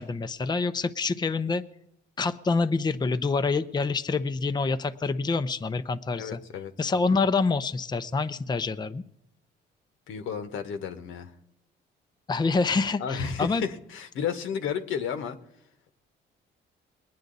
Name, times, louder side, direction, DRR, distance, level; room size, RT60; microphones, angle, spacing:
voice 1, 0.0-1.6 2.2-6.4 6.8-9.0 12.3-13.6, left 4 dB, 20° left, 9 dB, 0.6 m, -26 dB
voice 2, 6.2-6.7 10.1-11.3 13.0-15.4, left 7 dB, 85° left, 8 dB, 1.2 m, -32 dB
22.0 x 9.5 x 4.0 m, 0.81 s
cardioid pair, 90°, 20 cm